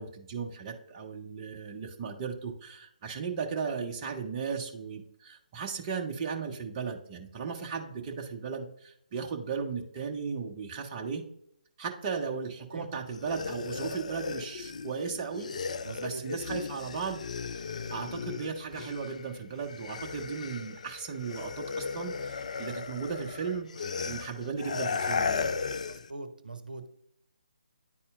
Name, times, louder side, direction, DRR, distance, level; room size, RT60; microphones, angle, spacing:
voice 1, 0.0-11.2 11.8-17.2 17.5-17.6 17.9-25.5, right 5 dB, 25° right, 1 dB, 0.8 m, -36 dB
sound 1, 13.1-19.3 19.6-26.1, left 5 dB, 50° left, 0.3 m, -36 dB
voice 2, 15.8-16.2 25.9-26.9, right 2 dB, 75° right, 9 dB, 0.7 m, -42 dB
9.9 x 4.2 x 2.5 m, 0.72 s
figure-of-eight pair, 140°, 5 cm